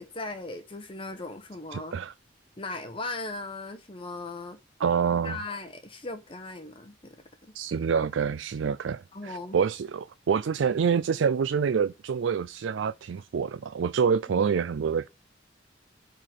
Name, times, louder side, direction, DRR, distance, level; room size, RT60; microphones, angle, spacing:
voice 1, 0.0-1.9 2.6-4.6 5.2-7.2 7.4-7.5 9.1-9.6, left 2 dB, 30° left, 0.9 m, -38 dB
voice 2, 1.7-2.1 4.8-5.4 7.5-15.1, right 6 dB, 85° right, 0.4 m, -27 dB
8.9 x 3.9 x 6.4 m
head